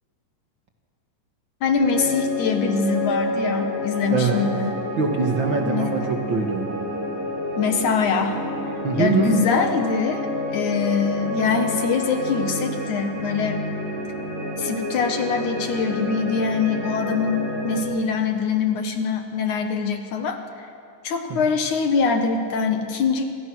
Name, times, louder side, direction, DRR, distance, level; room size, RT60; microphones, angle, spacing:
voice 1, 1.6-4.8 5.6-6.0 7.6-8.4 9.0-13.6 14.6-20.4 21.0-23.4, left 5 dB, 60° left, 5 dB, 2.1 m, -23 dB
sound 1, 1.8-17.8, left 1 dB, 50° right, 6.3 m, -29 dB
voice 2, 4.1-4.5 5.0-6.7 8.8-9.4 21.3-21.4, right 4 dB, 85° right, 2 dB, 1.0 m, -23 dB
28.5 x 27.0 x 6.3 m, 2.5 s
omnidirectional pair, 5.3 m